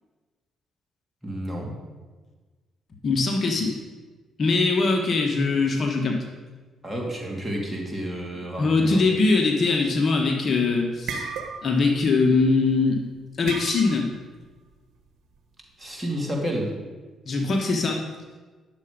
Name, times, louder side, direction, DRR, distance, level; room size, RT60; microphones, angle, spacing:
voice 1, 1.2-1.8 6.8-9.0 15.8-16.7, equal, 10° right, -2 dB, 2.6 m, -30 dB
voice 2, 3.0-3.7 4.4-6.2 8.6-11.3 11.6-13.0 13.4-14.1 17.3-18.0, left 3 dB, 50° left, 2 dB, 1.4 m, -22 dB
sound 1, 10.2-10.5 10.8-11.9 12.2-12.4 13.5-14.2, right 5 dB, 80° right, 1.1 m, -34 dB
10.5 x 7.1 x 5.2 m, 1.4 s
cardioid pair, 90°, 0 cm